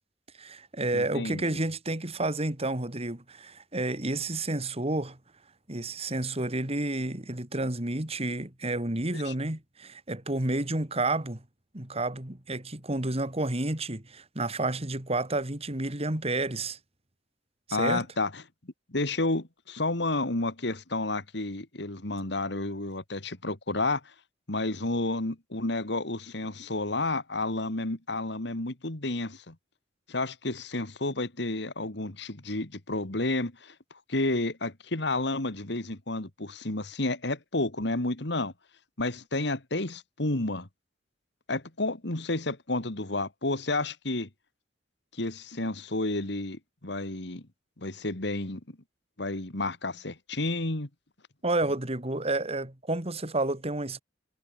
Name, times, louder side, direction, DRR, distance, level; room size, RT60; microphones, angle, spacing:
voice 1, 0.4-5.2 5.7-11.4 11.7-16.8 17.7-18.1 51.4-54.0, right 2 dB, 35° right, 2.7 m, -30 dB
voice 2, 0.9-1.6 9.1-9.3 17.7-18.4 18.9-24.0 24.5-29.6 30.1-33.7 34.1-38.5 39.0-40.7 41.5-44.3 45.1-47.4 47.8-48.6 49.2-50.9, left 2 dB, 65° left, 2.5 m, -31 dB
head